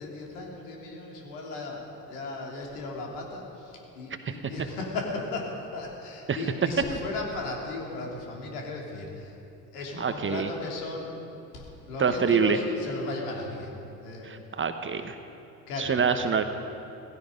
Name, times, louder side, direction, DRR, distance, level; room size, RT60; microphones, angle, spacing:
voice 1, 0.0-9.4 9.7-11.1 11.5-14.4 15.7-16.1, left 3 dB, 70° left, -1 dB, 3.3 m, -36 dB
voice 2, 10.0-10.5 12.0-12.6 14.2-15.2 15.8-16.4, right 6 dB, 25° right, 8 dB, 1.1 m, -26 dB
17.0 x 16.0 x 5.2 m, 3.0 s
hypercardioid pair, 65°, 47 cm